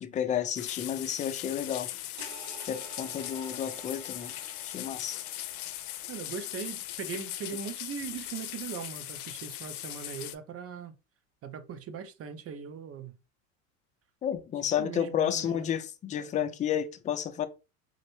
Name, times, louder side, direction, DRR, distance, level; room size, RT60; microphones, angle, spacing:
voice 1, 0.0-1.9 2.7-4.3 4.6-5.2 14.2-17.5, left 9 dB, 20° left, 0.3 m, -31 dB
sound 1, 0.5-10.3, left 14 dB, 90° left, 0.5 m, -39 dB
sound 2, 2.2-7.7, right 6 dB, 60° right, 1.1 m, -52 dB
voice 2, 6.1-10.9 11.4-13.1 14.8-15.7, right 7 dB, 30° right, 0.6 m, -40 dB
3.9 x 2.1 x 3.0 m
hypercardioid pair, 90°, 44 cm